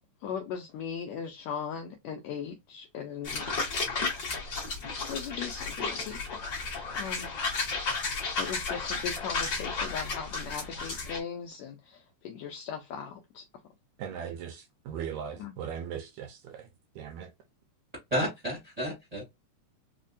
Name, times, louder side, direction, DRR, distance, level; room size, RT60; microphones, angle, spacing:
voice 1, 0.2-3.5 5.0-6.2 6.9-7.3 8.4-13.4 15.4-15.5, left 7 dB, 90° left, 1.5 m, -38 dB
sound 1, 3.2-11.2, left 4 dB, 50° left, 1.1 m, -33 dB
voice 2, 14.0-17.3, right 8 dB, 80° right, 1.7 m, -39 dB
voice 3, 18.1-19.2, equal, 35° right, 0.6 m, -31 dB
5.0 x 2.1 x 2.6 m
omnidirectional pair, 3.7 m